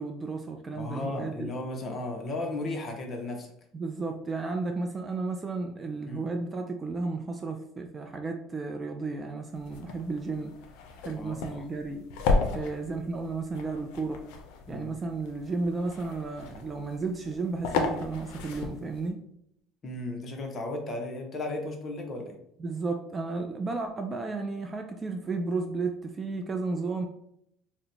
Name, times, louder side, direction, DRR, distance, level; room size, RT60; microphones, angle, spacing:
voice 1, 0.0-1.5 3.7-10.5 11.0-12.0 12.5-14.2 14.7-19.2 22.6-27.1, right 3 dB, 25° right, 5 dB, 0.3 m, -33 dB
voice 2, 0.7-3.5 6.1-6.2 11.2-11.6 12.5-12.7 14.7-14.9 19.8-22.3, left 2 dB, 35° left, 3 dB, 0.7 m, -35 dB
sound 1, 9.5-19.1, left 3 dB, 75° left, 0.5 m, -34 dB
2.8 x 2.1 x 3.9 m, 0.74 s
supercardioid pair, 110°, 0 cm